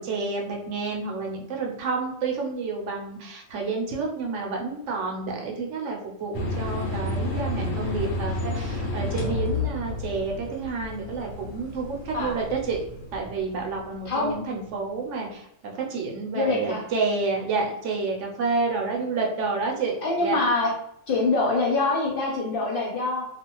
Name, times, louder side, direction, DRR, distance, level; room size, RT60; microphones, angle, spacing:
voice 1, 0.0-12.8 13.1-20.4, right 4 dB, 75° right, 0 dB, 0.9 m, -29 dB
sound 1, 6.3-14.4, left 2 dB, 85° left, 1.1 m, -31 dB
voice 2, 16.3-16.8 20.0-20.7 21.1-23.3, left 3 dB, 60° left, -2 dB, 0.6 m, -24 dB
2.4 x 2.3 x 2.9 m, 0.73 s
omnidirectional pair, 1.3 m